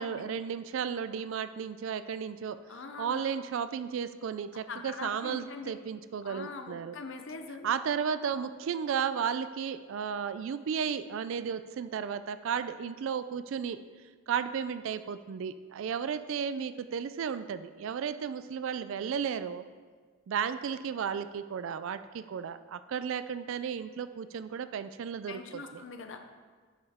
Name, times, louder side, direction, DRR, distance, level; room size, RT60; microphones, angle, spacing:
voice 1, 0.0-2.6 3.0-6.9 7.6-13.8 14.3-19.6 20.3-25.8, right 7 dB, 65° right, 12 dB, 0.3 m, -34 dB
voice 2, 2.7-3.3 4.7-5.7 6.2-7.7 25.3-26.2, left 4 dB, 55° left, 6 dB, 0.6 m, -42 dB
10.5 x 5.3 x 3.6 m, 1.5 s
head